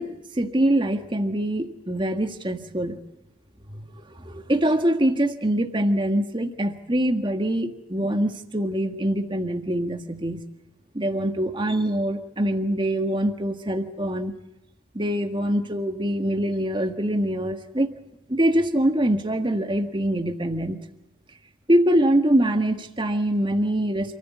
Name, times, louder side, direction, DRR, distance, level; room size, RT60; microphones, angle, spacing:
voice 1, 0.0-3.0 3.7-10.4 10.9-14.3 14.9-17.9 18.3-20.8 21.7-24.2, right 1 dB, 25° right, 6 dB, 1.6 m, -24 dB
28.5 x 15.0 x 8.4 m, 0.94 s
head